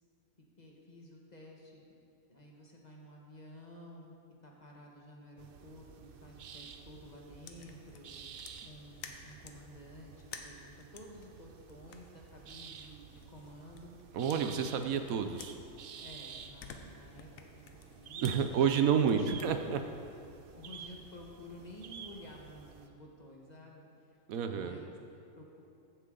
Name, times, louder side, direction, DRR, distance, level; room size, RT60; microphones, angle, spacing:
voice 1, 0.6-1.8 2.3-4.1 4.4-8.1 8.6-13.9 16.0-17.3 17.7-19.3 19.9-20.1 20.5-23.9 24.5-25.6, left 1 dB, 30° left, -1 dB, 1.3 m, -52 dB
sound 1, 5.4-22.9, right 7 dB, 60° right, 0.6 m, -51 dB
sound 2, 7.4-9.7 10.2-14.0 14.3-16.1 16.4-19.5, left 6 dB, 70° left, 1.2 m, -53 dB
voice 2, 14.1-15.6 18.2-19.8 24.3-24.8, right 7 dB, 80° right, 7 dB, 1.1 m, -29 dB
15.0 x 8.0 x 3.8 m, 2.5 s
omnidirectional pair, 1.5 m